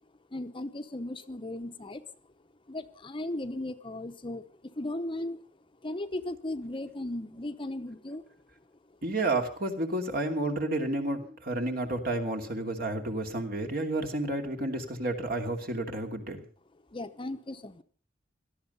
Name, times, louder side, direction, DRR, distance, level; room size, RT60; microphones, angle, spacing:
voice 1, 0.3-2.0 2.7-5.4 5.8-8.4 8.9-9.0 16.9-17.8, left 1 dB, 30° left, 9 dB, 0.8 m, -37 dB
voice 2, 9.0-16.4, right 2 dB, 55° right, 4 dB, 2.7 m, -31 dB
17.5 x 13.0 x 5.4 m, 0.42 s
head